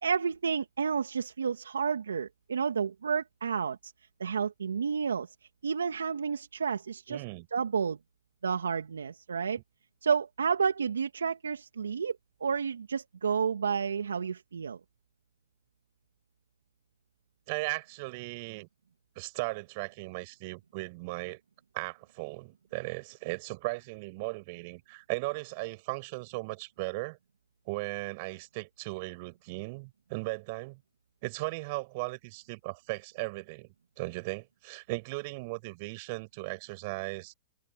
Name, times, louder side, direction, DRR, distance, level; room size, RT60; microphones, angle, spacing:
voice 1, 0.0-3.9 4.2-5.3 5.6-7.2 7.5-8.0 8.4-9.6 10.0-14.8, right 6 dB, 85° right, 2.1 m, -30 dB
voice 2, 7.1-7.5 9.5-9.6 17.5-18.7 19.2-21.4 21.7-27.2 27.7-30.8 31.2-37.3, right 26 dB, 50° right, 7.3 m, -37 dB
hypercardioid pair, 115°, 0 cm